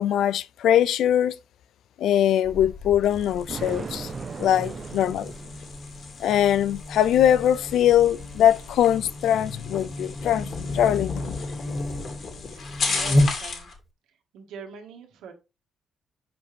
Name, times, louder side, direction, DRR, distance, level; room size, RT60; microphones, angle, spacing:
voice 1, 0.0-1.4 2.0-4.1 4.4-5.3 6.2-11.4, left 10 dB, 75° left, 0.4 m, -22 dB
Buzz, 2.4-13.8, left 1 dB, 35° left, 1.9 m, -32 dB
sound 1, 3.0-13.7, left 4 dB, 55° left, 2.3 m, -37 dB
Thunder, 3.5-6.0, right 5 dB, 40° right, 0.4 m, -37 dB
voice 2, 12.5-13.7 14.1-15.3, right 6 dB, 85° right, 1.8 m, -44 dB
7.8 x 5.1 x 3.2 m
cardioid pair, 90°, 0 cm